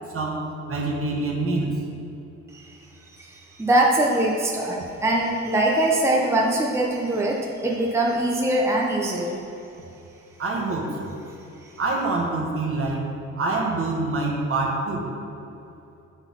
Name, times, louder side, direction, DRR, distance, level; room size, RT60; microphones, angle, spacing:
voice 1, 0.1-1.7 10.4-11.1 11.8-13.0 13.4-15.1, right 2 dB, 45° right, -1 dB, 1.4 m, -26 dB
voice 2, 3.2-9.4 11.6-11.7, right 1 dB, 10° right, -2 dB, 0.7 m, -22 dB
6.9 x 4.0 x 5.6 m, 2.8 s
cardioid pair, 90°, 30 cm